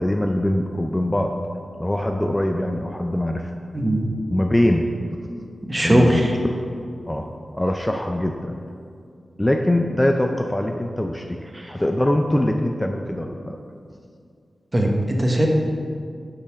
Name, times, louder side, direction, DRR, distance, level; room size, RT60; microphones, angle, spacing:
voice 1, 0.0-1.3 1.8-3.5 4.3-4.9 5.8-6.3 7.1-7.3 7.5-8.6 9.4-11.4 11.7-13.6, left 1 dB, 15° left, 3 dB, 0.4 m, -22 dB
voice 2, 3.7-4.1 5.7-6.4 11.5-11.7 14.7-15.5, right 1 dB, 25° right, 0 dB, 1.2 m, -19 dB
7.0 x 5.4 x 6.1 m, 2.3 s
wide cardioid pair, 85°, 0 cm